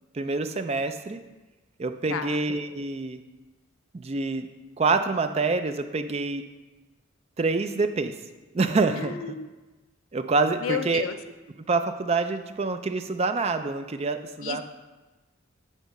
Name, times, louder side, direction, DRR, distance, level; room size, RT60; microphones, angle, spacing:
voice 1, 0.1-1.2 1.8-3.2 3.9-4.5 4.8-6.4 7.4-8.1 8.5-9.1 10.1-11.0 11.7-14.6, right 3 dB, 30° right, 8 dB, 0.4 m, -26 dB
voice 2, 9.0-9.5 10.6-11.2 14.4-14.6, left 7 dB, 70° left, 8 dB, 0.5 m, -31 dB
9.1 x 4.0 x 5.3 m, 1.2 s
head